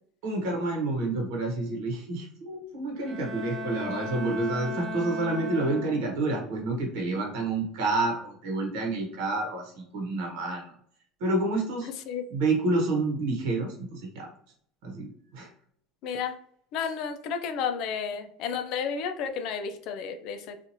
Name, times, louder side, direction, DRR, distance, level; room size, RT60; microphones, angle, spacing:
voice 1, 0.2-10.6 11.2-11.9 12.3-14.3 14.8-15.5 16.1-16.2, right 2 dB, 75° right, 0 dB, 1.0 m, -29 dB
Bowed string instrument, 3.0-6.4, right 1 dB, 20° right, 0.3 m, -36 dB
voice 2, 16.0-16.3 16.7-20.6, left 6 dB, 55° left, 7 dB, 0.4 m, -32 dB
2.9 x 2.4 x 2.6 m, 0.64 s
cardioid pair, 140°, 0 cm